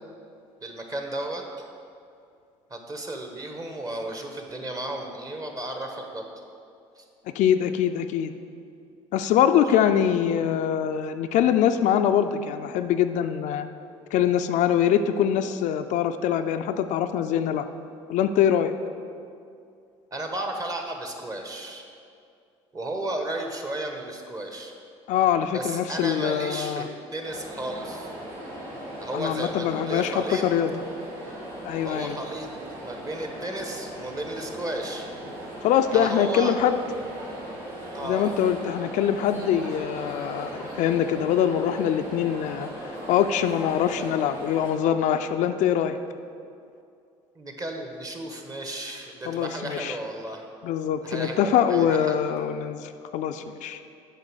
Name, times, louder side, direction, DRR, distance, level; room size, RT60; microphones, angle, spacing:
voice 1, 0.6-1.4 2.7-6.3 7.0-7.1 9.7-9.8 20.1-21.8 22.7-24.7 25.5-26.8 27.1-28.1 29.0-30.4 31.8-32.5 32.8-35.1 35.9-36.5 37.9-38.3 47.3-50.4 51.0-52.2, right 1 dB, 25° right, 3 dB, 1.2 m, -33 dB
voice 2, 7.4-8.3 9.1-13.7 14.1-17.7 18.1-18.7 25.1-26.9 29.1-30.7 31.6-32.2 35.6-36.8 38.0-42.7 43.1-46.0 49.3-50.0 50.6-53.8, left 9 dB, 65° left, 8 dB, 0.4 m, -23 dB
sound 1, 27.2-44.7, right 1 dB, 75° right, 2.1 m, -38 dB
6.6 x 5.2 x 6.3 m, 2.4 s
supercardioid pair, 75°, 13 cm